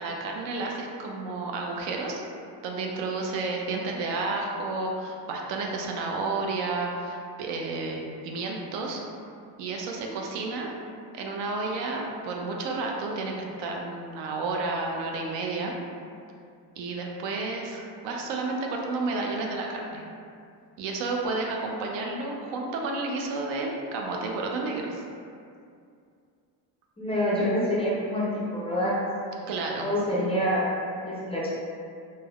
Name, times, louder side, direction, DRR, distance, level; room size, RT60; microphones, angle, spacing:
voice 1, 0.0-2.2 2.6-9.0 9.6-10.7 11.1-15.7 16.8-20.0 20.8-25.0 29.5-29.9, right 3 dB, 75° right, 0 dB, 0.5 m, -31 dB
voice 2, 27.0-29.1 29.8-30.7 31.1-31.5, equal, 15° left, -7 dB, 0.3 m, -26 dB
3.2 x 2.1 x 2.3 m, 2.4 s
cardioid pair, 130°, 43 cm